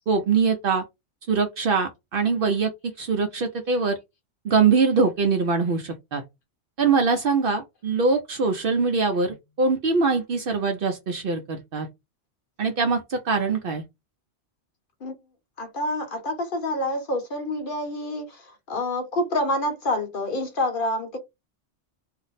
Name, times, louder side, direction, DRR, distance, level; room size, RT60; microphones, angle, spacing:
voice 1, 0.1-0.8 1.3-2.7 3.0-4.0 4.4-6.2 6.8-11.9 12.6-13.8, right 4 dB, 60° right, 0.6 m, -23 dB
voice 2, 15.6-21.2, left 1 dB, 50° left, 0.8 m, -27 dB
2.5 x 2.0 x 3.9 m
omnidirectional pair, 1.2 m